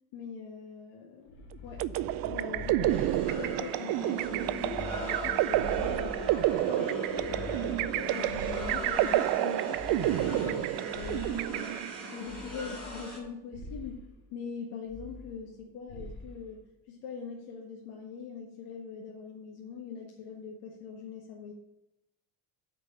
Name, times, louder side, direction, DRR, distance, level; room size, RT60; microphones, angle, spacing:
voice 1, 0.1-1.9 2.2-6.3 6.6-11.7 12.1-16.6 16.9-21.5, left 5 dB, 85° left, -1 dB, 1.5 m, -42 dB
sound 1, 1.3-3.7 4.2-6.6 7.1-9.3 9.7-11.6 12.3-13.2 13.5-14.0 14.9-15.6 15.9-16.3, left 1 dB, 55° left, 2.0 m, -43 dB
sound 2, 1.8-12.2, right 16 dB, 70° right, 0.5 m, -30 dB
sound 3, 2.9-13.2, left 1 dB, 5° left, 4.1 m, -40 dB
8.5 x 5.1 x 6.7 m, 0.88 s
cardioid pair, 165°, 37 cm